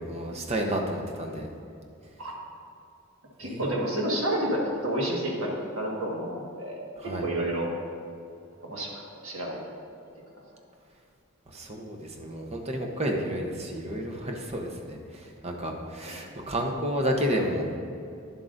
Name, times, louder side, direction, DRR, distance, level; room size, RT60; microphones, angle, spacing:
voice 1, 0.0-1.5 3.4-3.7 7.0-7.3 11.5-17.7, equal, 30° right, 1 dB, 0.9 m, -31 dB
voice 2, 3.4-7.7 8.6-9.8 16.1-16.2, right 1 dB, 85° right, -3 dB, 1.7 m, -30 dB
10.5 x 7.6 x 2.6 m, 2.5 s
head